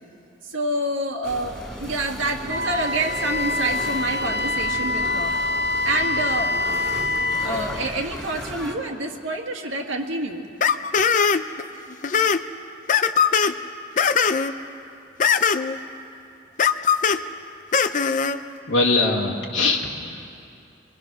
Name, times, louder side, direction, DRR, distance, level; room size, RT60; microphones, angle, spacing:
voice 1, 0.4-5.3 5.8-6.5 7.4-10.4 17.2-17.3, right 1 dB, 75° right, 1 dB, 1.9 m, -27 dB
sound 1, 1.2-8.7, equal, ahead, 2.4 m, -36 dB
Wind instrument woodwind instrument, 2.5-7.5, left 2 dB, 50° right, 0.9 m, -25 dB
sound 2, 10.6-11.6 11.9-12.4 12.9-13.5 14.0-14.5 15.2-15.8 16.6-17.2 17.7-18.4, left 6 dB, 40° left, 0.6 m, -20 dB
voice 2, 18.7-20.3, left 3 dB, 85° left, -3 dB, 1.8 m, -22 dB
25.0 x 22.0 x 6.1 m, 2.6 s
head